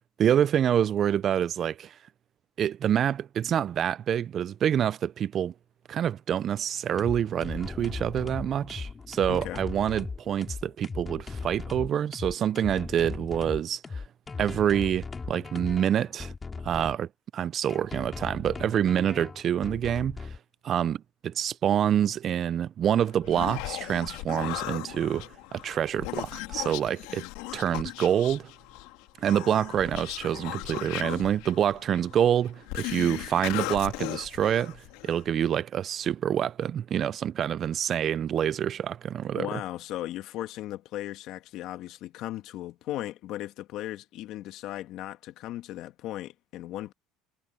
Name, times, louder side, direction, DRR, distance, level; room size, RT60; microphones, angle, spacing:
voice 1, 0.2-2.0 2.6-5.5 5.9-14.0 14.4-16.3 16.6-20.3 20.6-21.0 21.2-25.3 25.5-27.2 27.5-28.5 29.2-34.8 35.0-39.5, right 9 dB, 40° right, 0.3 m, -27 dB
sound 1, 6.9-17.0 17.7-20.4, left 4 dB, 20° left, 4.5 m, -38 dB
voice 2, 9.3-9.6 39.4-46.9, left 14 dB, 55° left, 1.5 m, -37 dB
Human voice, 23.0-35.3, left 21 dB, 75° left, 2.3 m, -37 dB
cardioid pair, 135°, 0 cm